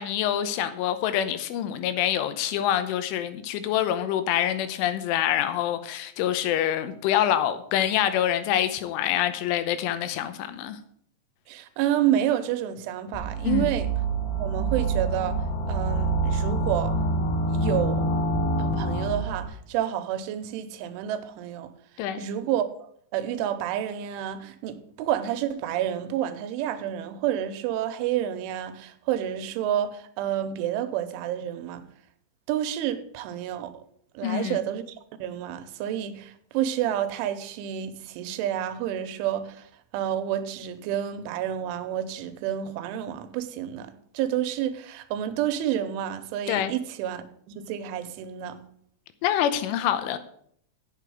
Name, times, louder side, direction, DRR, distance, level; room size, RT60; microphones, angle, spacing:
voice 1, 0.0-10.8 13.4-13.8 22.0-22.2 34.2-34.6 46.5-46.7 49.2-50.2, left 11 dB, 85° left, 3.3 m, -26 dB
voice 2, 11.5-13.9 14.4-17.0 17.5-18.1 18.6-21.7 22.2-31.9 32.5-33.7 34.1-47.2 47.6-48.6, right 10 dB, 85° right, 3.3 m, -29 dB
sound 1, 13.1-19.4, right 2 dB, 60° left, 3.6 m, -26 dB
8.4 x 6.8 x 7.8 m
omnidirectional pair, 5.5 m